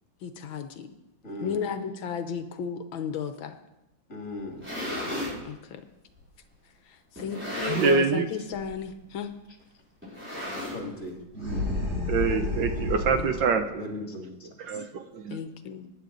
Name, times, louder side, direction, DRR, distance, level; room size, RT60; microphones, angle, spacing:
voice 1, 0.2-0.9 1.4-3.6 5.4-5.8 6.9-9.3 13.2-13.3 15.3-15.9, left 6 dB, 75° left, 8 dB, 1.6 m, -34 dB
voice 2, 1.2-1.7 4.1-4.7 10.6-11.2 13.8-14.5, left 2 dB, 40° left, 1 dB, 2.7 m, -38 dB
sound 1, 4.4-5.4 6.2-6.3 7.2-8.2 8.5-8.8 9.0-9.1 10.0-11.1, left 1 dB, 5° right, 5.4 m, -34 dB
voice 3, 7.6-8.3 12.1-13.9 14.7-15.4, right 5 dB, 70° right, 7 dB, 1.5 m, -25 dB
sound 2, 11.3-13.5, left 2 dB, 35° right, 5.4 m, -30 dB
22.0 x 9.9 x 3.9 m, 0.96 s
omnidirectional pair, 2.2 m